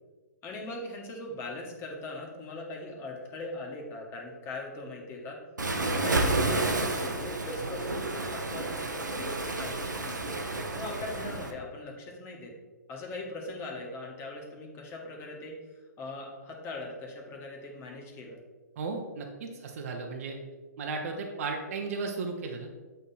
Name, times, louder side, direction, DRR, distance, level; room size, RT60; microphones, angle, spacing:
voice 1, 0.4-5.4 5.8-10.4 10.7-12.5 12.9-15.5 16.0-18.4, left 2 dB, 25° left, -1 dB, 1.6 m, -40 dB
Waves surf, 5.6-11.5, right 2 dB, 90° right, 1.0 m, -30 dB
voice 2, 18.8-20.4 20.8-22.7, right 4 dB, 50° right, 2 dB, 1.0 m, -35 dB
8.2 x 4.0 x 4.2 m, 1.3 s
hypercardioid pair, 130°, 10 cm